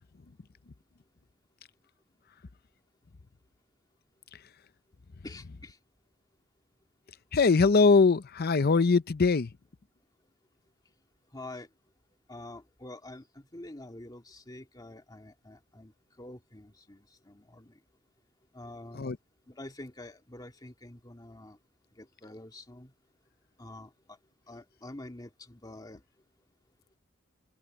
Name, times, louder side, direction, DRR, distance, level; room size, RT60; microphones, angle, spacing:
voice 1, 5.2-5.8 11.3-11.7 12.3-17.8 18.5-19.1 19.5-21.6 22.0-22.9 23.6-24.2 24.5-26.0, left 1 dB, 20° left, 2.1 m, -47 dB
voice 2, 7.3-9.5 18.9-19.2, left 4 dB, 50° left, 0.6 m, -22 dB
head